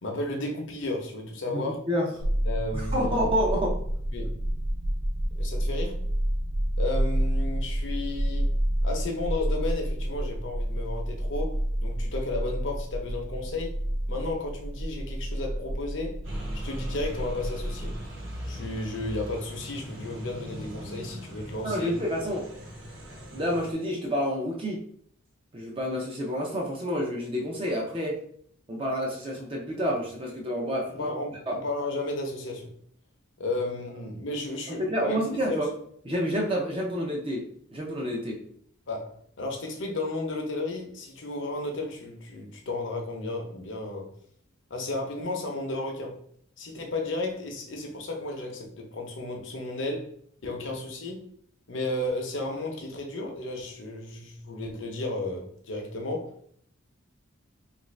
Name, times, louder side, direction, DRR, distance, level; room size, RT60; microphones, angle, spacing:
voice 1, 0.0-1.8 2.5-3.2 4.1-4.4 5.4-6.0 6.8-8.5 8.8-13.7 14.1-16.2 16.5-17.9 18.5-21.9 31.0-32.7 33.4-35.2 35.4-35.6 38.9-44.1 44.7-46.2 46.6-50.1 50.4-51.2 51.7-56.3, left 2 dB, 65° left, 1 dB, 0.7 m, -33 dB
voice 2, 1.5-2.1 2.7-3.8 21.6-22.5 23.3-24.8 25.5-28.2 28.7-31.1 31.5-31.6 34.7-35.7 36.0-38.4, equal, 25° right, -1 dB, 0.5 m, -29 dB
sound 1, 2.2-18.0, equal, 85° right, 0.7 m, -29 dB
sound 2, 16.2-23.7, equal, 70° right, 1.0 m, -40 dB
3.1 x 2.5 x 3.1 m, 0.64 s
head